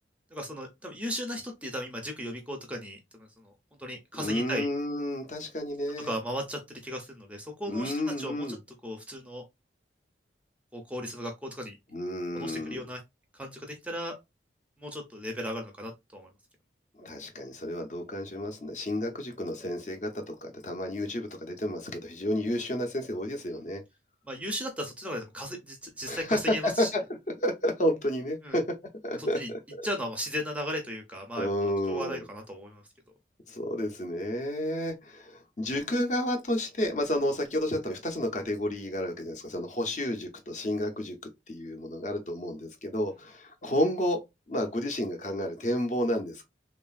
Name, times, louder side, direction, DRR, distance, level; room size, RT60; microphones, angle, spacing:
voice 1, 0.3-3.5 3.8-4.7 6.0-8.6 8.8-9.4 10.7-11.8 12.3-13.0 13.3-14.1 14.8-16.3 24.2-26.9 28.4-28.6 29.2-29.5 29.8-32.8, equal, 5° right, 0.5 m, -36 dB
voice 2, 4.2-6.1 7.7-8.6 11.9-12.8 17.0-23.8 26.1-26.9 27.4-28.6 29.0-29.4 31.3-32.2 33.5-41.2 41.5-44.2 44.5-46.5, left 1 dB, 40° left, 0.5 m, -31 dB
3.1 x 2.4 x 2.3 m
head